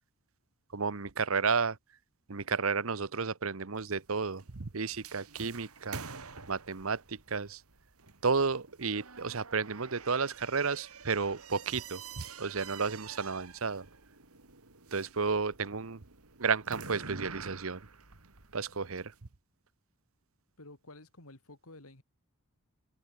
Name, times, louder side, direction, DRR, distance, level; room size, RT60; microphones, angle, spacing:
voice 1, 0.7-1.8 2.3-6.0 6.5-7.6 8.2-13.9 14.9-16.0 16.4-17.8 18.5-19.1, right 5 dB, 65° right, 1.0 m, -32 dB
sound 1, 3.8-19.2, right 5 dB, 90° right, 2.8 m, -48 dB
voice 2, 20.6-22.0, left 2 dB, 85° left, 4.0 m, -52 dB
head